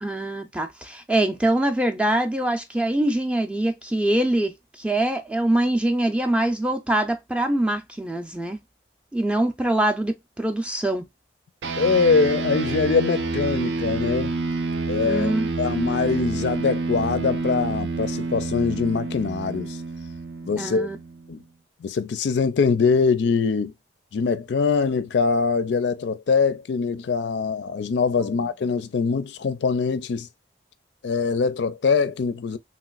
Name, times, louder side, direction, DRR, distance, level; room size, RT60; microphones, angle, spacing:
voice 1, 0.0-8.6 9.1-11.1 15.0-15.7 20.6-21.0, right 1 dB, 5° right, 0.4 m, -24 dB
sound 1, 11.6-21.4, right 3 dB, 75° right, 0.5 m, -28 dB
voice 2, 11.8-14.4 14.9-15.3 15.6-19.8 20.4-20.9 21.3-21.4 21.8-23.7 24.1-30.3 31.0-32.6, left 5 dB, 70° left, 0.4 m, -23 dB
3.1 x 3.0 x 2.2 m
head